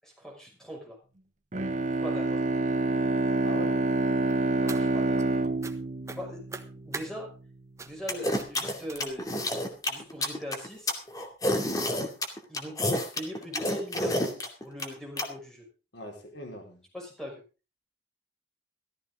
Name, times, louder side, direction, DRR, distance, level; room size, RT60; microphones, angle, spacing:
voice 1, 0.0-1.0 2.0-2.4 4.5-5.4 6.1-7.3 7.8-9.4 9.9-11.0 12.5-15.7 16.9-17.4, equal, 5° left, 0 dB, 5.9 m, -40 dB
Bowed string instrument, 1.5-7.1, right 2 dB, 40° right, 0.9 m, -27 dB
voice 2, 3.4-3.8 15.9-16.8, left 1 dB, 75° left, 1 dB, 4.7 m, -40 dB
sound 1, 4.3-5.3 5.6-5.8 6.0-7.1 7.8-8.0 8.3-8.5 8.9-9.3 10.0-10.1 10.5-10.6 10.9-11.0, right 3 dB, 15° right, 1.3 m, -42 dB
sound 2, 8.1-15.3, left 1 dB, 20° left, 2.4 m, -29 dB
14.5 x 14.5 x 3.8 m, 0.34 s
head